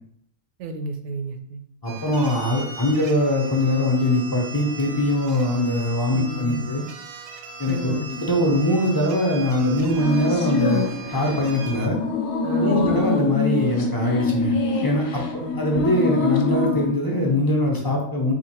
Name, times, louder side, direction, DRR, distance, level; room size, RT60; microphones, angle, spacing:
voice 1, 0.6-1.6 6.1-6.7 7.7-8.0 12.4-13.0 15.4-16.0, right 2 dB, 85° right, 5 dB, 1.0 m, -32 dB
voice 2, 1.8-6.8 7.6-10.9 11.1-12.0 12.6-14.6 14.8-18.3, left 1 dB, 30° left, -1 dB, 0.4 m, -22 dB
sound 1, 1.9-11.9, right 4 dB, 65° right, 0.7 m, -39 dB
sound 2, 10.0-16.9, left 4 dB, 65° left, 0.8 m, -25 dB
2.9 x 2.4 x 4.2 m, 0.64 s
omnidirectional pair, 1.3 m